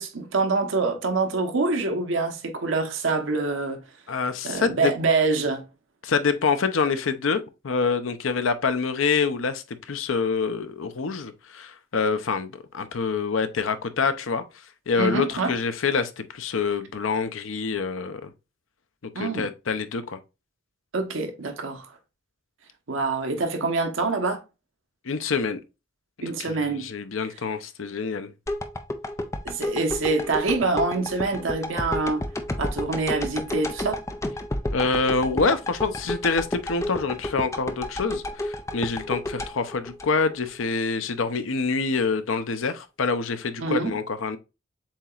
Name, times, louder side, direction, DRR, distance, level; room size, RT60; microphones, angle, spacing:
voice 1, 0.0-3.9 4.4-5.7 15.0-15.5 19.1-19.5 20.9-21.9 22.9-24.4 26.2-26.9 29.4-32.3 32.6-34.0 43.6-43.9, right 3 dB, 80° right, 1.0 m, -25 dB
voice 2, 4.1-4.9 6.0-14.4 14.9-18.3 19.0-20.2 25.0-25.6 26.4-28.3 34.7-44.4, left 4 dB, 85° left, 0.6 m, -26 dB
sound 1, 28.5-40.6 41.1-41.2, left 1 dB, 15° left, 0.4 m, -31 dB
7.2 x 2.9 x 2.4 m
head